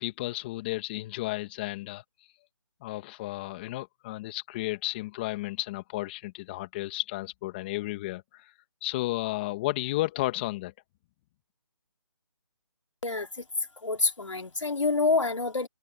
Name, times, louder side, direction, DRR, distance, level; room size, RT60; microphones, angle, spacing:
voice 1, 0.0-2.0 2.8-8.5 8.8-10.7, left 18 dB, 20° left, 2.2 m, -33 dB
voice 2, 13.0-13.4 13.8-15.7, left 3 dB, 90° left, 3.3 m, -27 dB
figure-of-eight pair, 160°, 15 cm